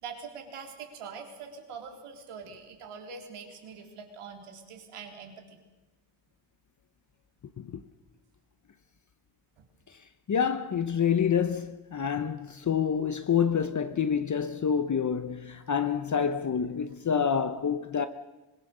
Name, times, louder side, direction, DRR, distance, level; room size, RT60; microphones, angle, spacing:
voice 1, 0.0-5.6 9.6-9.7, right 5 dB, 85° right, 4.1 m, -44 dB
voice 2, 10.3-18.1, left 7 dB, 35° left, 0.9 m, -27 dB
24.5 x 22.0 x 6.8 m
cardioid pair, 130°, 49 cm